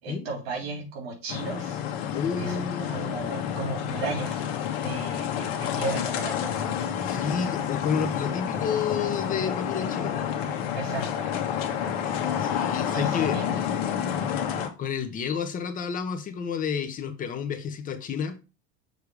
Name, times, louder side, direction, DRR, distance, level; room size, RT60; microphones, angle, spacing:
voice 1, 0.0-1.8 2.4-4.5 4.8-6.4 10.7-11.3 12.8-14.1, right 3 dB, 90° right, 2 dB, 3.3 m, -35 dB
sound 1, 1.3-14.7, left 9 dB, 80° left, 1.3 m, -29 dB
voice 2, 2.1-3.0 7.0-10.2 12.4-13.4 14.8-18.4, left 6 dB, 30° left, 8 dB, 0.8 m, -30 dB
6.7 x 3.3 x 4.8 m, 0.30 s
supercardioid pair, 140°, 30 cm